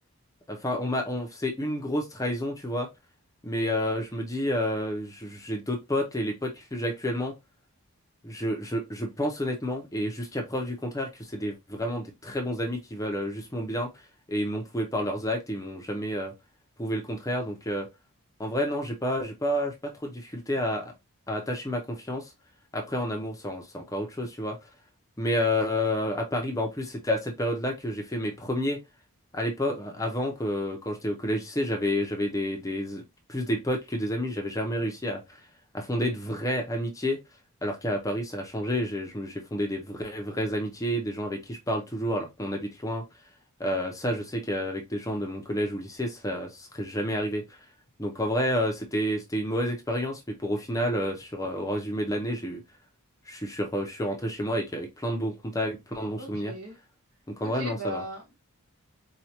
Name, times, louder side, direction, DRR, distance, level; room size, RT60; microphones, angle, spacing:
voice 1, 0.5-2.9 3.4-7.3 8.2-13.9 14.3-16.3 16.8-17.9 18.4-19.7 20.0-20.9 21.3-22.3 22.7-24.6 25.2-28.8 29.3-33.0 33.3-35.4 35.7-37.2 37.6-43.0 43.6-47.4 48.0-52.6 53.3-56.5 57.3-58.0, equal, 15° left, 0.6 m, -30 dB
voice 2, 56.2-56.8 57.4-58.3, right 1 dB, 75° right, 1.8 m, -37 dB
4.5 x 2.3 x 2.8 m
head